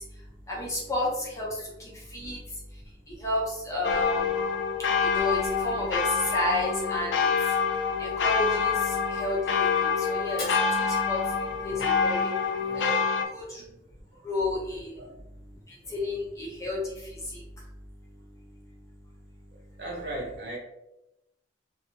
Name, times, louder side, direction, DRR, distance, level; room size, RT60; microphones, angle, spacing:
voice 1, 0.5-1.5 2.1-2.4 3.2-4.3 5.0-6.0 6.3-7.3 8.0-8.8 9.1-10.4 11.1-11.2 11.6-12.2 12.7-12.9 13.3-13.6 14.2-14.9 15.9-16.8, left 1 dB, 20° left, -5 dB, 0.8 m, -30 dB
sound 1, 3.8-13.3, left 6 dB, 80° left, 0.4 m, -26 dB
Fire, 10.2-12.2, left 2 dB, 55° left, 0.9 m, -44 dB
voice 2, 11.5-13.0 13.4-13.8 15.0-15.2 15.8-15.9 19.8-20.6, right 1 dB, 75° right, -3 dB, 1.0 m, -40 dB
2.9 x 2.2 x 2.8 m, 0.89 s
head